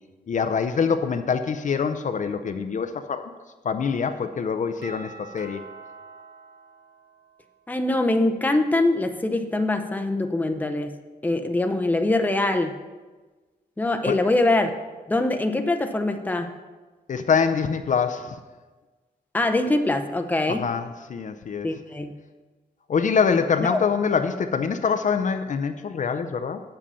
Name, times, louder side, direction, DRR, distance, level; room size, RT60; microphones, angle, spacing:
voice 1, 0.3-3.3 3.6-5.6 14.1-14.2 17.1-18.4 20.5-21.7 22.9-26.6, left 6 dB, 50° left, 8 dB, 0.6 m, -24 dB
Doorbell, 4.8-7.6, right 4 dB, 80° right, 2.3 m, -45 dB
voice 2, 7.7-11.0 11.2-12.8 13.8-14.7 15.1-16.5 19.3-20.7 21.6-22.1 23.6-23.8, left 2 dB, 10° left, 6 dB, 0.6 m, -23 dB
8.7 x 7.6 x 5.5 m, 1.3 s
wide cardioid pair, 120°, 17 cm